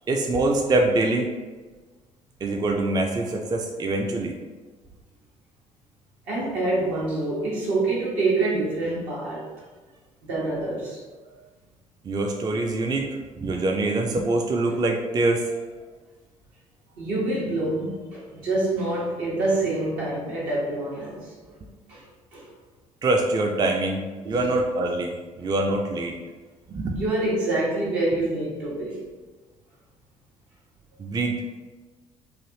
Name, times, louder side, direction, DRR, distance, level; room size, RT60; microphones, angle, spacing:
voice 1, 0.1-1.3 2.4-4.3 12.0-13.1 13.4-15.6 23.0-25.1 25.4-26.2 26.7-27.0 31.0-31.4, right 2 dB, 25° right, 1 dB, 0.4 m, -24 dB
voice 2, 6.3-9.5 10.2-11.0 17.0-21.3 21.9-22.5 24.2-24.6 26.9-29.0, right 2 dB, 70° right, -6 dB, 1.1 m, -26 dB
3.1 x 2.5 x 2.7 m, 1.3 s
hypercardioid pair, 50°, 17 cm